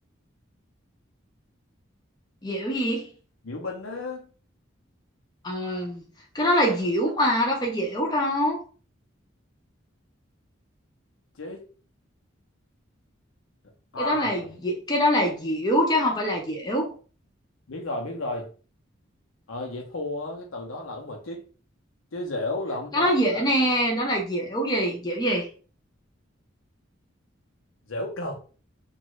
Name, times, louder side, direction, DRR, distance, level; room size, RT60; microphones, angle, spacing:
voice 1, 2.4-3.1 5.4-6.0 6.3-8.6 14.0-16.9 22.9-25.5, equal, 20° left, 0.6 m, -24 dB
voice 2, 3.4-4.3 11.4-11.6 13.9-14.5 17.7-18.5 19.5-21.5 22.1-23.5 27.9-28.4, left 2 dB, 80° left, 0.7 m, -32 dB
2.6 x 2.4 x 3.0 m
head